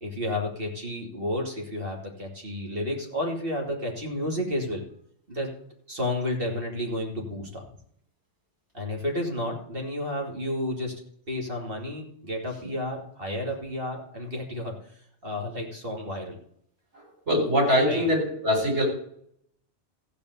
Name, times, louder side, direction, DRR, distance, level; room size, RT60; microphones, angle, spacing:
voice 1, 0.0-4.8 5.3-5.5 5.9-7.7 8.7-10.9 11.3-14.8 15.2-16.4 17.8-18.1, left 1 dB, 55° right, 1 dB, 3.0 m, -31 dB
voice 2, 17.3-18.8, equal, 90° right, -2 dB, 6.7 m, -22 dB
15.0 x 5.3 x 8.3 m, 0.68 s
omnidirectional pair, 1.1 m